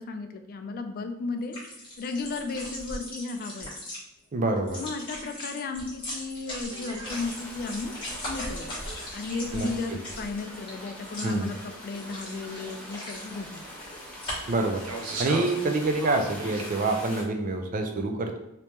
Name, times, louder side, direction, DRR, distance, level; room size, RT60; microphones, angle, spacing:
voice 1, 0.0-1.6 2.0-3.7 4.8-7.9 8.3-8.8 9.1-13.6, left 3 dB, 40° left, 7 dB, 0.3 m, -34 dB
sound 1, 1.4-4.0 4.6-10.7 11.1-11.5 12.0-13.4 14.2-14.6 14.9-15.6, left 1 dB, 25° left, 1.3 m, -39 dB
voice 2, 4.3-4.8 9.5-10.0 11.2-11.5 14.5-14.8 15.2-18.4, right 2 dB, 40° right, 5 dB, 0.4 m, -27 dB
sound 2, 6.6-16.7, right 2 dB, 90° right, 0.7 m, -42 dB
sound 3, 7.1-17.2, left 1 dB, 5° left, 0.6 m, -43 dB
3.0 x 2.9 x 3.4 m, 0.87 s
head